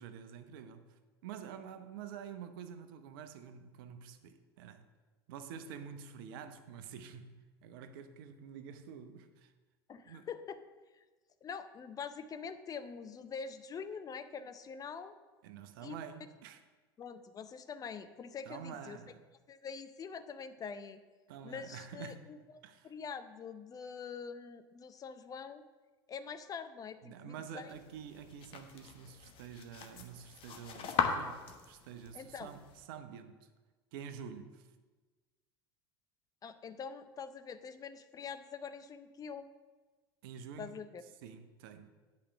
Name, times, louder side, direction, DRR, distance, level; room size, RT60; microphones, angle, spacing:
voice 1, 0.0-4.8 5.3-7.3 7.6-9.5 10.1-10.3 15.4-16.6 18.4-19.2 21.3-22.3 22.6-22.9 27.0-33.5 33.9-34.7 40.2-40.8 41.2-41.9, right 7 dB, 60° right, 0.8 m, -48 dB
voice 2, 9.9-10.6 11.4-15.1 15.8-16.0 17.0-19.0 19.5-21.0 21.4-22.4 22.8-25.6 26.1-27.7 32.1-32.5 36.4-39.5 40.6-41.0, left 6 dB, 30° left, 0.6 m, -44 dB
sound 1, 27.7-32.8, left 6 dB, 45° left, 1.1 m, -39 dB
8.7 x 5.2 x 6.7 m
figure-of-eight pair, 80°, 13 cm